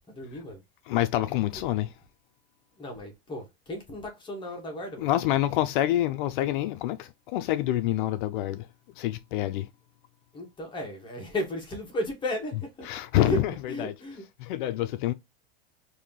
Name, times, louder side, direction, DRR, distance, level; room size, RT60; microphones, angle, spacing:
voice 1, 0.1-0.6 2.8-5.1 10.3-12.9 13.2-13.4 13.7-14.2, left 1 dB, 15° left, 1.0 m, -34 dB
voice 2, 0.9-1.9 5.0-8.7 9.0-9.7 12.8-13.9 14.4-15.1, left 14 dB, 55° left, 0.4 m, -27 dB
3.1 x 2.7 x 3.7 m
supercardioid pair, 150°, 31 cm